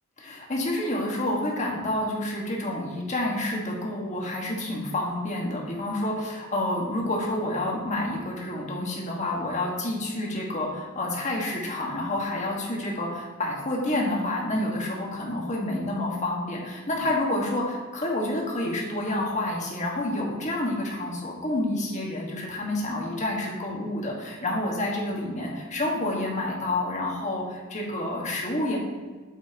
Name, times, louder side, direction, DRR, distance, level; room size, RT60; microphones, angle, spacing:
voice 1, 0.2-28.8, left 1 dB, 35° left, -2 dB, 1.7 m, -29 dB
8.2 x 7.5 x 3.0 m, 1.5 s
head